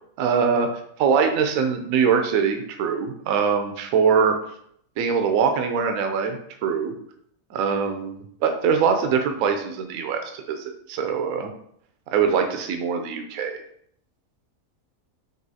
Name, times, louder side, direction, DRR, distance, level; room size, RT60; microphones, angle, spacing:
voice 1, 0.2-0.7 1.0-4.3 5.0-6.9 7.5-11.5 12.1-13.6, right 6 dB, 70° right, 5 dB, 0.9 m, -23 dB
5.4 x 2.8 x 2.7 m, 0.67 s
omnidirectional pair, 1.7 m